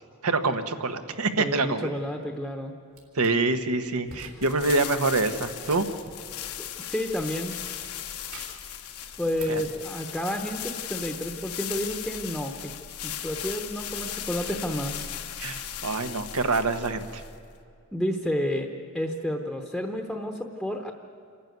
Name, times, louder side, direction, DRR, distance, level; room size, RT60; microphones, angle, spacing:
voice 1, 0.2-1.9 3.1-5.9 9.5-9.6 15.4-17.2, right 3 dB, 85° right, 8 dB, 1.3 m, -26 dB
voice 2, 1.4-2.7 6.6-7.6 9.2-12.7 13.0-15.0 17.9-18.7 18.9-20.9, equal, ahead, 3 dB, 0.9 m, -30 dB
sound 1, 2.9-3.3 4.0-4.6 4.9-7.1 7.5-8.7 9.1-9.7, right 3 dB, 70° right, 4.1 m, -47 dB
sound 2, 4.4-17.5, left 10 dB, 90° left, 1.2 m, -37 dB
27.0 x 11.5 x 9.3 m, 2.4 s
head